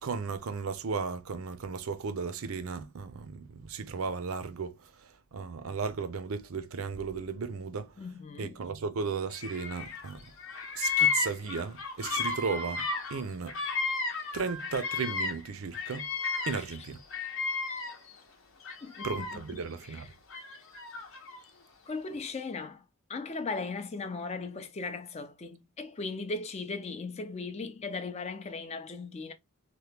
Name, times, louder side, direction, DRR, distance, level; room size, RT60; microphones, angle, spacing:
voice 1, 0.0-4.8 5.3-7.9 8.4-10.2 10.8-12.8 13.1-13.6 14.3-16.0 16.5-17.0 19.0-20.1, right 5 dB, 70° right, 0.5 m, -35 dB
voice 2, 8.0-8.6 16.5-16.7 18.8-20.1 21.9-22.8 23.1-29.3, left 3 dB, 30° left, 0.4 m, -38 dB
Bird vocalization bird call bird song, 9.4-10.1 10.4-15.5 15.7-18.1 18.6-19.6 20.3-21.4, left 5 dB, 60° left, 0.7 m, -33 dB
2.9 x 2.1 x 3.3 m
head